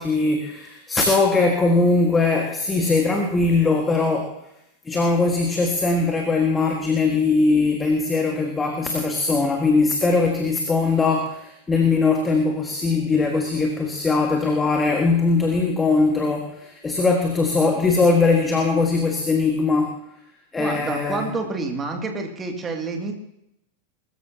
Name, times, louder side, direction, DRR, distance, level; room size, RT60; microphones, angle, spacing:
voice 1, 0.0-4.4 4.9-20.0 20.5-21.2, left 3 dB, 15° left, 2 dB, 1.7 m, -20 dB
voice 2, 20.6-23.1, right 3 dB, 20° right, 3 dB, 2.3 m, -28 dB
21.5 x 14.0 x 2.9 m, 0.78 s
figure-of-eight pair, 90°, 0 cm